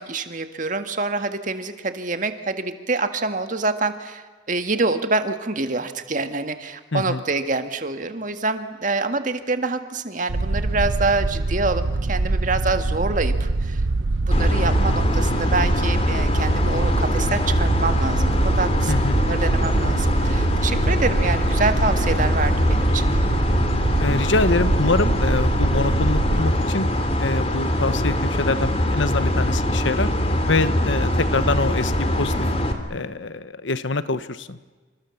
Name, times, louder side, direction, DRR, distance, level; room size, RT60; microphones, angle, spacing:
voice 1, 0.0-13.8 14.2-23.1, right 3 dB, 40° right, 8 dB, 1.8 m, -26 dB
voice 2, 6.9-7.2 18.9-19.2 24.0-26.9 27.2-30.1 30.5-32.3 32.9-34.6, left 3 dB, 75° left, 13 dB, 1.1 m, -24 dB
sound 1, 10.3-26.4, right 2 dB, 80° right, 0.8 m, -24 dB
sound 2, 14.3-32.7, left 1 dB, 30° left, 2.6 m, -23 dB
27.5 x 26.5 x 7.2 m, 1.4 s
head